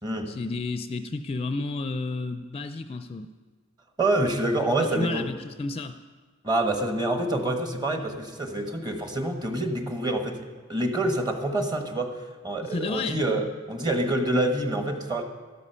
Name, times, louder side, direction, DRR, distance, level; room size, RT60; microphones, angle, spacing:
voice 1, 0.3-3.3 4.8-5.9 12.6-13.2, left 3 dB, 30° left, 9 dB, 0.4 m, -31 dB
voice 2, 4.0-5.3 6.4-15.2, right 1 dB, 20° right, 5 dB, 1.2 m, -27 dB
13.0 x 12.5 x 5.6 m, 1.5 s
head